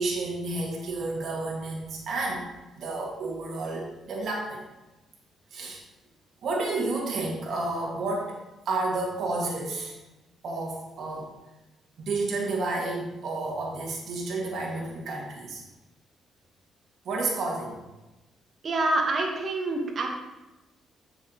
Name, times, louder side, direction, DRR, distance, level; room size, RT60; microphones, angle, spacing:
voice 1, 0.0-2.5 2.8-4.7 5.5-5.8 6.4-8.4 8.7-9.9 10.4-11.3 12.0-15.6 17.1-17.8, right 2 dB, 65° right, -2 dB, 1.8 m, -31 dB
voice 2, 18.6-20.1, right 2 dB, 45° right, 1 dB, 1.3 m, -26 dB
7.5 x 5.9 x 3.0 m, 1.0 s
cardioid pair, 90°, 0 cm